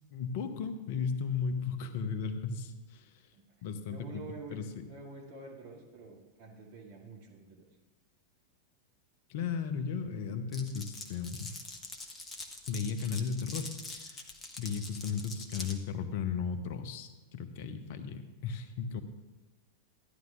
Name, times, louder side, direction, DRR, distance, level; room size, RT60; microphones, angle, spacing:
voice 1, 0.1-3.2 3.6-4.1 4.5-4.8 9.3-11.5 12.7-14.3 14.6-19.0, left 6 dB, 50° left, 9 dB, 0.8 m, -35 dB
voice 2, 3.3-7.7, right 3 dB, 50° right, -2 dB, 2.4 m, -48 dB
Glass, 10.5-15.8, left 2 dB, 15° left, 1.2 m, -44 dB
14.5 x 10.5 x 2.5 m, 1.2 s
figure-of-eight pair, 90°, 0 cm